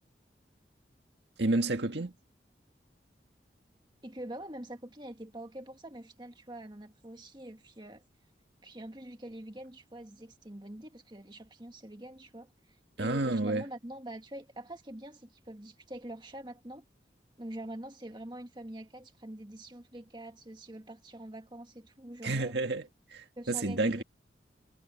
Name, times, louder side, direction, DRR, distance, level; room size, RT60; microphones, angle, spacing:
voice 1, 1.4-2.1 13.0-13.6 22.2-22.9 23.1-24.0, right 2 dB, 80° right, 1.9 m, -30 dB
voice 2, 4.0-8.0 8.6-16.8 17.4-22.6 23.4-24.0, right 1 dB, 25° right, 1.8 m, -45 dB
head